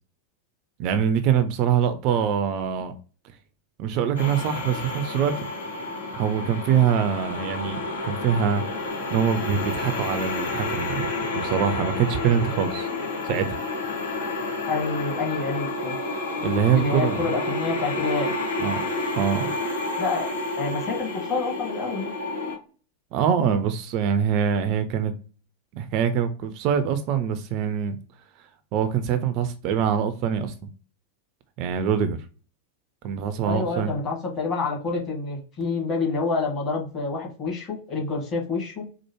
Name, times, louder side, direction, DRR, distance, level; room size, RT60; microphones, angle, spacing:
voice 1, 0.8-2.9 3.8-5.5 6.1-8.6 9.1-12.9 13.2-13.6 16.4-17.3 18.6-18.8 19.2-19.5 23.1-25.1 25.7-28.0 28.7-30.5 31.6-32.2 33.0-33.9, right 8 dB, 40° right, 0.4 m, -24 dB
sound 1, 4.2-22.6, left 2 dB, 70° left, 1.7 m, -30 dB
voice 2, 14.7-16.0 16.7-18.3 20.0-22.1 33.4-38.9, left 4 dB, 30° left, 1.6 m, -28 dB
4.5 x 2.1 x 3.0 m
figure-of-eight pair, 90°, 0 cm